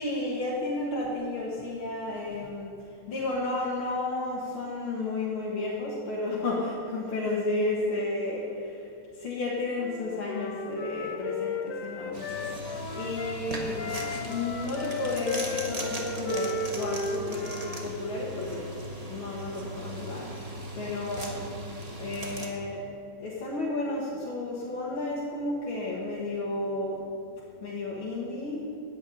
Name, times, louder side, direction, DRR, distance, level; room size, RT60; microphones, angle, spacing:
voice 1, 0.0-8.8 9.2-14.0 14.2-18.8 19.1-21.5 22.0-22.8 23.2-27.0 27.6-28.7, left 2 dB, 80° left, -6 dB, 2.5 m, -32 dB
Wind instrument woodwind instrument, 9.8-13.4 13.8-17.9, left 4 dB, 60° left, 1.4 m, -34 dB
sound 1, 12.1-22.5, right 1 dB, 20° right, 1.4 m, -38 dB
14.5 x 5.9 x 9.0 m, 2.5 s
omnidirectional pair, 2.3 m